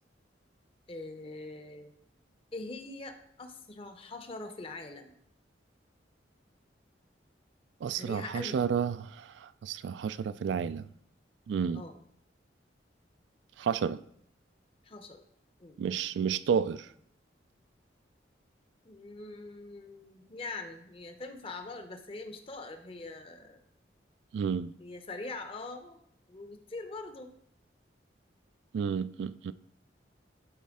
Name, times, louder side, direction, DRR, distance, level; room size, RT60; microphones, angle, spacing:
voice 1, 0.9-1.9 2.5-5.2 7.9-8.6 11.7-12.0 14.8-15.2 15.6-15.8 18.8-23.6 24.8-26.0 26.3-27.3, left 3 dB, 30° left, 0.7 m, -43 dB
voice 2, 7.8-10.9 11.5-11.8 13.6-14.0 15.8-16.9 24.3-24.7 28.7-29.5, right 7 dB, 75° right, 0.3 m, -31 dB
11.5 x 4.2 x 3.6 m
head